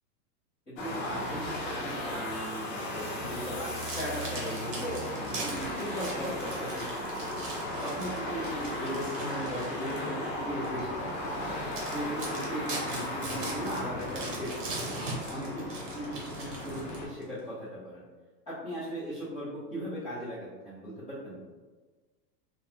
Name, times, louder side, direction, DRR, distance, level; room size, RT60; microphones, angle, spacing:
voice 1, 0.7-5.0 5.3-7.2 7.8-11.6 11.9-14.7 15.1-18.0 18.5-21.4, equal, 10° left, -17 dB, 0.5 m, -38 dB
sound 1, 0.8-17.1, left 1 dB, 50° left, 0.7 m, -36 dB
sound 2, 3.6-10.1 10.6-10.8 11.3-11.4 11.7-17.2, right 2 dB, 50° right, 0.9 m, -41 dB
2.8 x 2.2 x 2.4 m, 1.3 s
supercardioid pair, 160°, 49 cm